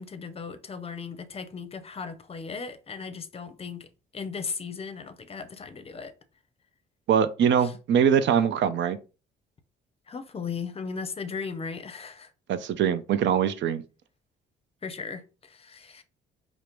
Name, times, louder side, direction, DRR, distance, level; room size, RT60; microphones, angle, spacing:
voice 1, 0.0-3.9 4.1-6.1 7.6-7.7 10.1-12.3 14.8-16.0, left 5 dB, 30° left, 0.6 m, -37 dB
voice 2, 7.1-9.0 12.5-13.8, right 8 dB, 65° right, 0.5 m, -23 dB
4.9 x 2.0 x 3.0 m
cardioid pair, 90°, 20 cm